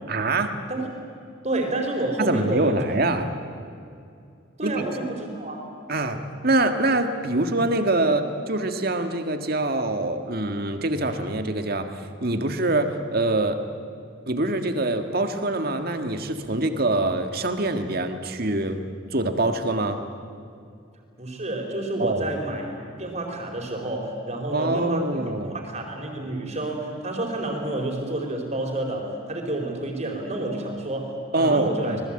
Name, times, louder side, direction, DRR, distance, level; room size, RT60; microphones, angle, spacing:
voice 1, 0.1-0.6 2.2-3.3 4.6-4.7 5.9-6.2 6.4-13.6 14.3-18.8 19.1-20.0 22.0-22.3 24.5-25.5 31.3-32.0, right 2 dB, 50° right, 7 dB, 1.8 m, -24 dB
voice 2, 1.4-2.8 4.6-5.6 21.2-32.0, right 2 dB, 35° right, 2 dB, 4.5 m, -29 dB
26.0 x 20.0 x 8.9 m, 2.4 s
head